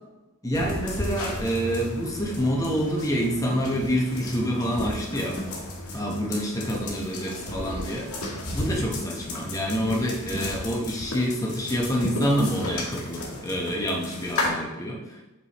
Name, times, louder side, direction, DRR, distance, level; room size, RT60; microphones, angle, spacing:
voice 1, 0.4-5.4 5.9-8.1 8.5-15.2, equal, 15° left, -1 dB, 1.0 m, -27 dB
sound 1, 0.5-14.5, left 1 dB, 90° left, 1.7 m, -34 dB
7.5 x 4.7 x 3.0 m, 1.1 s
head